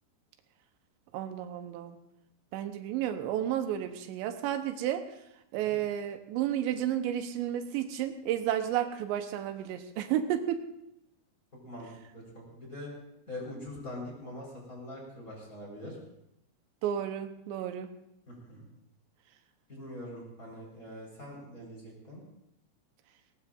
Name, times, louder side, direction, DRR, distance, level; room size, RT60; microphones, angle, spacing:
voice 1, 1.1-2.0 2.5-5.0 5.5-10.6 16.8-17.9, right 11 dB, 90° right, 7 dB, 3.1 m, -32 dB
voice 2, 11.6-12.9 13.3-16.0 18.3-18.7 19.7-22.2, left 1 dB, 20° left, -2 dB, 4.3 m, -43 dB
19.5 x 18.5 x 2.5 m, 0.81 s
omnidirectional pair, 5.2 m